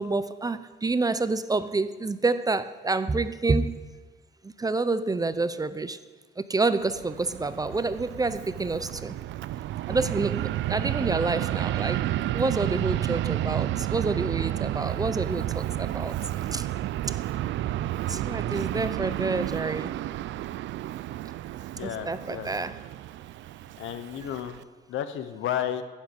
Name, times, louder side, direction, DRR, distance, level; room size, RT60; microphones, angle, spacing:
voice 1, 0.0-3.8 4.4-6.0 6.4-9.2 9.9-12.0 12.3-16.1 16.5-16.6 18.1-19.9 21.8-22.8, right 3 dB, 20° right, 13 dB, 0.5 m, -28 dB
Fixed-wing aircraft airplane, 6.8-24.6, right 14 dB, 70° right, 0.4 m, -31 dB
voice 2, 21.8-22.5 23.8-24.6 24.9-25.8, left 10 dB, 85° left, 10 dB, 0.9 m, -32 dB
9.3 x 7.3 x 8.0 m, 1.4 s
cardioid pair, 90°, 20 cm